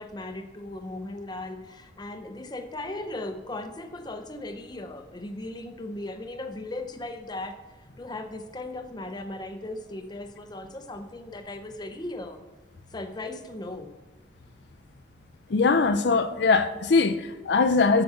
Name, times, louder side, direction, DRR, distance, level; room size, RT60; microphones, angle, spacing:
voice 1, 0.0-7.6 8.0-12.4 12.9-13.9, left 2 dB, 25° left, 0.7 m, -37 dB
voice 2, 15.5-18.0, left 4 dB, 65° left, 0.5 m, -21 dB
7.8 x 6.8 x 5.7 m
head